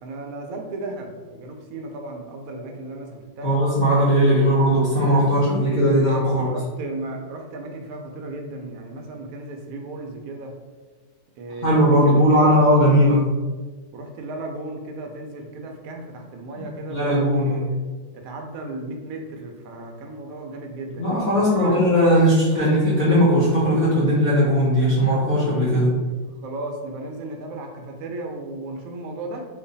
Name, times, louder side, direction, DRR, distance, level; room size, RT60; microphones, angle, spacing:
voice 1, 0.0-3.6 4.3-4.6 6.4-10.5 11.4-12.7 13.9-17.8 18.1-21.0 21.6-21.8 26.4-29.5, right 2 dB, 75° right, 2 dB, 0.8 m, -35 dB
voice 2, 3.4-6.5 11.6-13.3 16.6-16.7 16.9-17.6 21.0-25.9, equal, 60° left, -9 dB, 0.4 m, -18 dB
3.1 x 2.2 x 3.9 m, 1.3 s
omnidirectional pair, 2.0 m